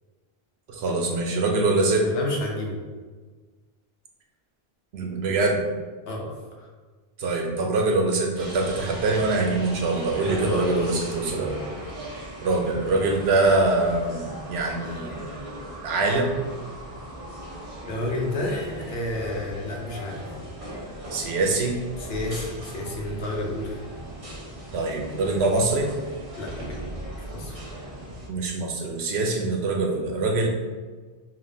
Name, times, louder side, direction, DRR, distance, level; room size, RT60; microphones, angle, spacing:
voice 1, 0.7-2.1 4.9-5.6 7.2-11.5 12.4-15.3 15.8-16.5 21.1-21.8 24.7-25.9 28.3-30.5, right 2 dB, 85° right, 1 dB, 1.0 m, -24 dB
voice 2, 2.0-2.8 6.1-6.7 10.1-10.7 11.3-11.5 17.9-20.3 22.0-23.8 26.4-26.5 27.3-27.6, left 1 dB, 75° left, -2 dB, 1.1 m, -30 dB
sound 1, 8.3-28.3, right 1 dB, 35° right, 0.9 m, -38 dB
5.0 x 2.9 x 2.7 m, 1.4 s
omnidirectional pair, 1.0 m